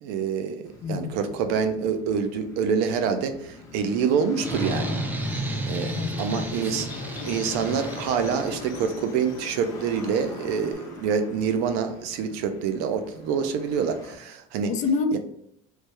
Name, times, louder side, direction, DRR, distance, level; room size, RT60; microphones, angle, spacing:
voice 1, 0.0-5.0 5.7-5.9 6.2-6.9 7.3-14.7 15.1-15.2, right 6 dB, 75° right, 0.6 m, -26 dB
sound 1, 0.6-14.2, left 2 dB, 20° left, 0.9 m, -42 dB
voice 2, 0.8-1.2 5.9-6.5 6.9-7.0 14.7-15.2, left 4 dB, 45° left, 0.5 m, -28 dB
sound 2, 4.4-8.9, right 1 dB, 10° right, 0.4 m, -32 dB
sound 3, 5.2-10.7, left 6 dB, 75° left, 0.7 m, -41 dB
3.3 x 3.2 x 3.3 m
cardioid pair, 145°, 17 cm